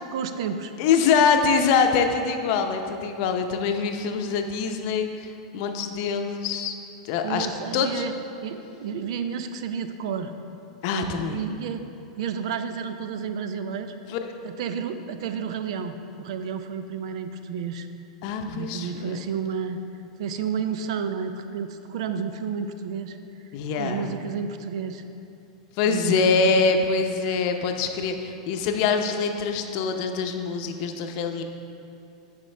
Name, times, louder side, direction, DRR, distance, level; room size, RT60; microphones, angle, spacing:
voice 1, 0.1-0.7 7.2-8.1 8.4-10.3 10.9-11.8 12.2-13.9 14.4-17.9 18.5-19.8 20.2-23.2 23.7-25.0 25.8-26.6, right 6 dB, 70° right, 9 dB, 0.5 m, -31 dB
voice 2, 0.8-6.7 7.0-7.5 7.7-8.0 10.8-11.4 14.1-14.4 18.2-19.2 23.5-24.1 25.8-31.4, left 5 dB, 55° left, 5 dB, 0.7 m, -24 dB
10.0 x 5.2 x 3.3 m, 2.7 s
hypercardioid pair, 120°, 3 cm